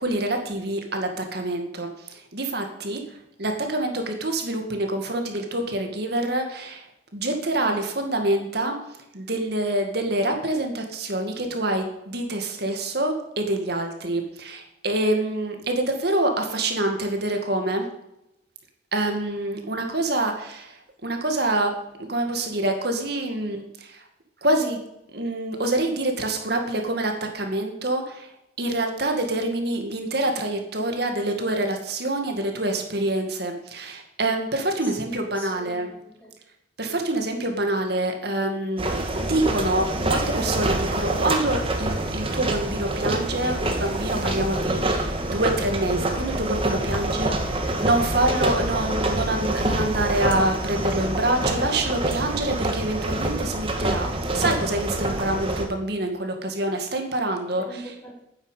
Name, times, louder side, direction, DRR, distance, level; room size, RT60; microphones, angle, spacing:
voice 1, 0.0-3.0 3.4-6.9 7.1-8.8 9.1-17.9 18.9-21.7 22.0-24.0 24.4-24.8 25.1-28.3 28.6-35.9 36.8-57.8, right 1 dB, 55° right, 4 dB, 2.3 m, -26 dB
voice 2, 34.8-36.3 57.6-58.2, right 1 dB, 10° left, -7 dB, 4.7 m, -42 dB
sound 1, 38.8-55.7, right 1 dB, 30° right, 1.6 m, -26 dB
10.0 x 9.0 x 8.4 m, 0.83 s
head